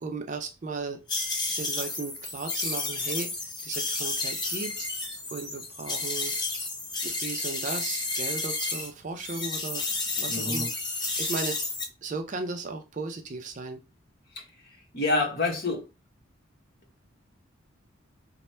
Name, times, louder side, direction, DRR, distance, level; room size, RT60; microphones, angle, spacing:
voice 1, 0.0-1.0 1.6-3.3 3.6-4.9 5.3-6.4 7.0-9.9 10.2-10.7 11.0-11.6 12.0-13.8, right 3 dB, 40° right, 0.4 m, -36 dB
sound 1, 1.1-8.9 9.2-11.8, left 3 dB, 20° left, 0.7 m, -31 dB
voice 2, 10.3-10.7 14.4-14.5 14.9-15.9, left 2 dB, 50° left, 1.1 m, -27 dB
3.1 x 2.1 x 4.2 m
head